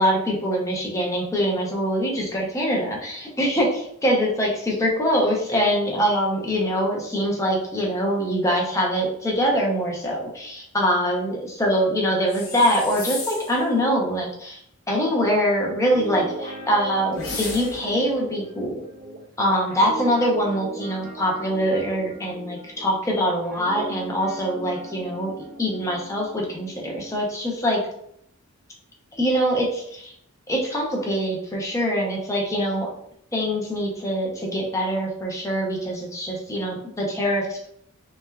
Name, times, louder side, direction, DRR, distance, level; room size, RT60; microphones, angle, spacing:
voice 1, 0.0-14.6 14.9-18.8 19.4-25.3 25.6-27.8 29.1-30.1 30.5-32.9 33.3-37.7, equal, 15° left, -2 dB, 0.5 m, -24 dB
sound 1, 12.3-13.6 17.1-18.0, left 4 dB, 85° left, 0.9 m, -34 dB
Guitar, 15.9-23.1 23.5-27.2, right 2 dB, 40° right, 0.3 m, -37 dB
3.2 x 2.1 x 2.2 m, 0.70 s
head